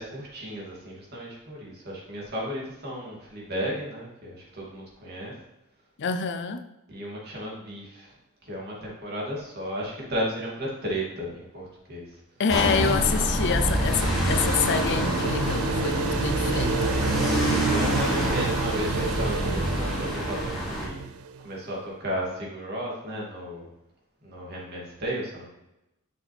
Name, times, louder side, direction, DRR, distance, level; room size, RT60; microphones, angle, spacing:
voice 1, 0.0-5.3 6.9-8.1 8.4-12.0 17.7-21.0 21.4-23.7 24.2-25.5, equal, 50° right, -4 dB, 2.4 m, -34 dB
voice 2, 6.0-6.7 12.4-17.1, left 6 dB, 55° left, 9 dB, 0.5 m, -27 dB
sound 1, 12.5-20.9, equal, ahead, 2.5 m, -26 dB
sound 2, 13.0-21.5, right 6 dB, 70° right, 0.4 m, -31 dB
7.4 x 5.8 x 3.4 m, 0.92 s
head